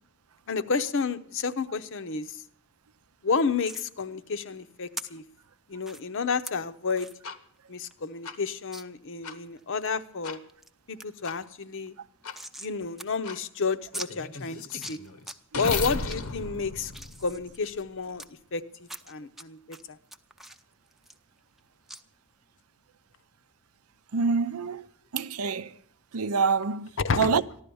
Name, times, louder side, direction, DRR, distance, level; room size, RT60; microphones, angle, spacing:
voice 1, 0.5-2.4 3.2-5.2 5.7-7.1 7.7-10.4 10.9-11.9 12.6-15.0 15.6-16.9 17.2-18.2 18.5-18.6 19.1-20.0 27.0-27.4, left 4 dB, 60° left, 0.8 m, -30 dB
sound 1, 3.6-3.9 5.0-5.1 5.8-6.0 6.5-6.6 7.0-7.2 7.6-7.7 7.9-8.0 8.7-8.8 9.3-9.9 10.3-10.7 11.0-11.1 11.4-12.7 13.0-13.1 13.4-13.5 13.9-14.1 14.6-15.4 15.7-16.2 16.6-18.3 18.8-19.4 19.7-21.6 21.9-22.0, right 1 dB, ahead, 0.5 m, -41 dB
sound 2, 7.2-7.4 8.2-8.4 9.2-9.4 10.2-10.4 11.2-11.4 12.2-12.4 13.2-13.4 13.9-17.8, left 4 dB, 85° left, 1.1 m, -35 dB
voice 2, 24.1-24.8 25.1-25.7 26.1-26.9 27.2-27.4, right 5 dB, 85° right, 0.6 m, -26 dB
14.5 x 11.5 x 7.0 m
head